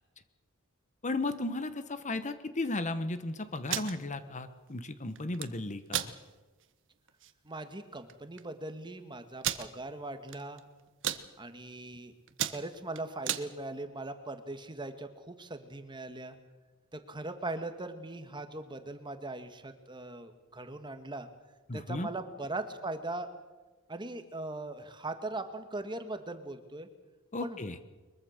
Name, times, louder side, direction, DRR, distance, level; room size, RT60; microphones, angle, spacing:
voice 1, 1.0-6.1 21.7-22.1 27.3-27.8, left 2 dB, 35° left, 11 dB, 1.2 m, -35 dB
sound 1, 3.5-3.9 5.2-5.5 5.9-6.1 6.6-6.7 7.1-7.3 8.1-8.2 8.4-8.5 9.4-9.7 10.3-10.6 10.9-11.2 11.8-12.0 12.3-13.5, right 10 dB, 60° right, 1.3 m, -33 dB
voice 2, 7.4-10.6 11.4-12.1 12.5-16.3 16.9-21.3 21.7-23.3 23.9-26.9 27.4-27.6, right 2 dB, 20° right, 8 dB, 1.7 m, -40 dB
23.0 x 22.5 x 6.6 m, 1.2 s
head